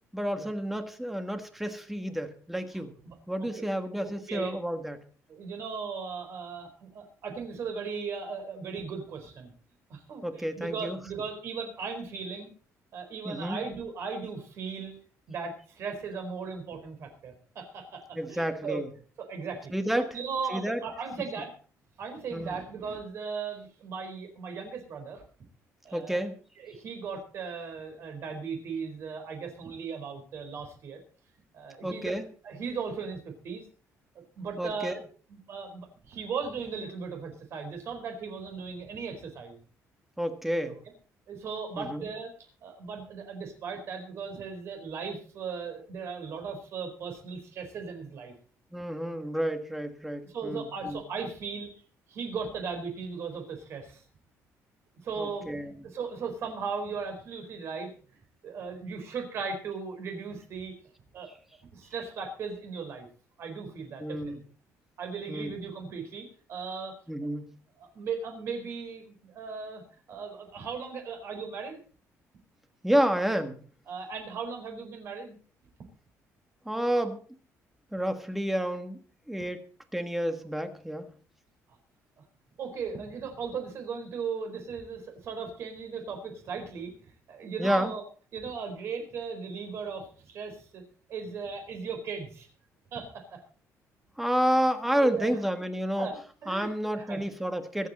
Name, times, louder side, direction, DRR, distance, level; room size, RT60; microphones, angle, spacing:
voice 1, 0.1-2.9 3.3-5.0 10.2-11.0 13.2-13.6 18.1-18.9 19.7-20.1 20.5-20.8 22.3-22.5 25.9-26.3 31.8-32.3 34.6-35.0 40.2-40.8 41.8-42.0 48.7-51.0 55.2-55.8 64.0-64.4 65.3-65.5 67.1-67.5 72.8-73.6 76.6-77.2 77.9-79.0 79.3-79.6 79.9-81.1 87.6-87.9 94.2-96.1 96.5-97.9, equal, 5° right, 8 dB, 1.4 m, -30 dB
voice 2, 4.0-4.5 5.3-9.5 9.9-12.5 12.9-15.0 15.3-18.8 19.2-21.5 22.0-25.2 25.8-26.3 26.6-31.0 31.5-32.2 32.4-33.6 34.1-34.9 35.3-39.6 41.3-42.3 42.6-48.3 50.2-51.7 52.1-54.0 55.0-55.5 55.8-57.9 58.4-60.7 61.1-61.3 61.7-63.1 63.4-64.3 65.0-66.9 67.8-69.8 70.1-71.8 73.9-75.3 82.6-88.0 88.3-90.8 91.1-92.5 92.9-93.4 94.3-94.5 94.9-95.4 96.0-97.3, right 5 dB, 50° right, 5 dB, 4.4 m, -37 dB
24.0 x 8.3 x 4.2 m, 0.40 s
cardioid pair, 165°, 6 cm